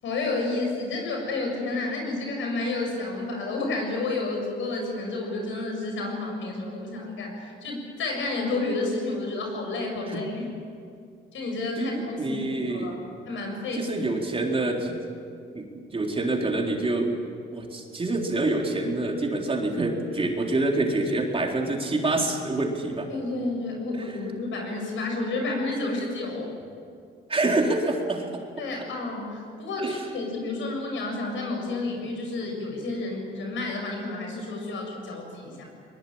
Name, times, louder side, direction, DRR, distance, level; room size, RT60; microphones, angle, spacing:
voice 1, 0.0-10.5 11.3-13.9 23.1-26.5 28.6-35.6, left 2 dB, 75° left, 2 dB, 7.4 m, -30 dB
voice 2, 11.8-13.0 13.7-15.0 15.5-17.1 17.5-23.1 24.0-24.2 27.3-28.2 29.8-30.0, right 2 dB, 30° right, 1 dB, 3.8 m, -26 dB
22.0 x 21.0 x 8.8 m, 2.3 s
cardioid pair, 90°, 20 cm